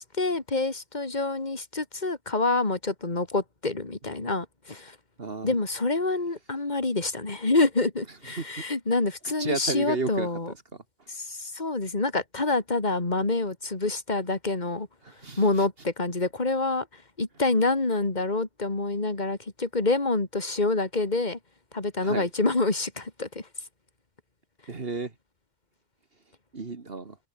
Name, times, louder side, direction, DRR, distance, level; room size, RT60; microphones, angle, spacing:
voice 1, 0.0-5.0 5.4-10.5 11.1-14.9 15.4-21.4 21.7-23.5, left 3 dB, 35° left, 2.9 m, -27 dB
voice 2, 5.2-5.6 8.4-8.5 9.4-10.3 15.2-15.4 22.0-22.3 24.7-25.1 26.5-27.2, right 3 dB, 50° right, 2.1 m, -32 dB
open air
omnidirectional pair, 1.3 m